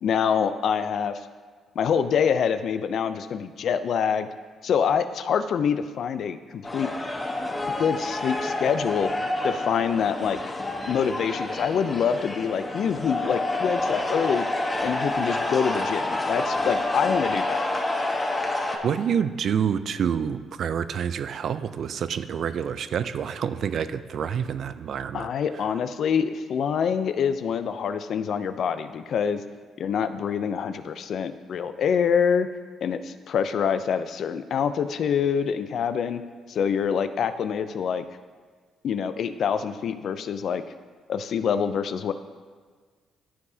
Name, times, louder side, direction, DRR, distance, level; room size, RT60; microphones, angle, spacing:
voice 1, 0.0-1.2 1.8-4.3 4.6-6.9 7.8-9.1 9.4-10.4 10.9-14.5 14.8-17.6 25.1-29.4 29.8-32.5 32.8-36.2 36.5-38.0 38.8-40.6 41.1-42.1, left 7 dB, 65° left, 11 dB, 0.4 m, -25 dB
sound 1, 6.6-18.8, left 2 dB, 20° left, 1.1 m, -28 dB
voice 2, 18.8-25.3, right 8 dB, 60° right, 13 dB, 0.3 m, -27 dB
12.5 x 4.7 x 2.7 m, 1.5 s
cardioid pair, 90°, 0 cm